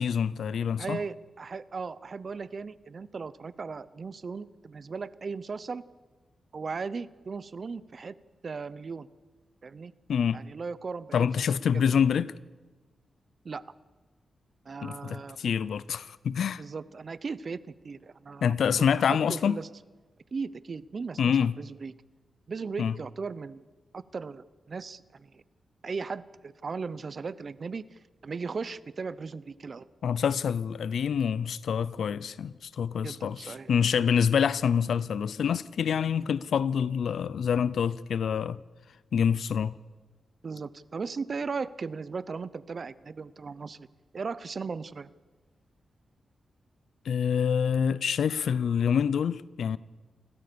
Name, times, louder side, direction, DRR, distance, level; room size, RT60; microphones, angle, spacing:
voice 1, 0.0-1.0 10.1-10.4 11.1-12.3 14.8-16.6 18.4-19.6 21.2-21.6 22.8-23.0 30.0-38.6 39.1-39.7 47.1-49.8, left 7 dB, 85° left, 0.6 m, -26 dB
voice 2, 0.8-5.8 6.5-8.1 8.4-9.1 9.6-9.9 10.3-11.4 11.7-11.8 13.4-13.6 14.6-15.4 16.6-18.5 18.9-19.7 20.3-21.9 22.5-23.6 23.9-25.4 25.8-29.8 33.0-33.7 40.4-43.9 44.1-45.1, right 4 dB, 45° right, 0.7 m, -37 dB
28.5 x 13.5 x 6.9 m
wide cardioid pair, 105°, 0 cm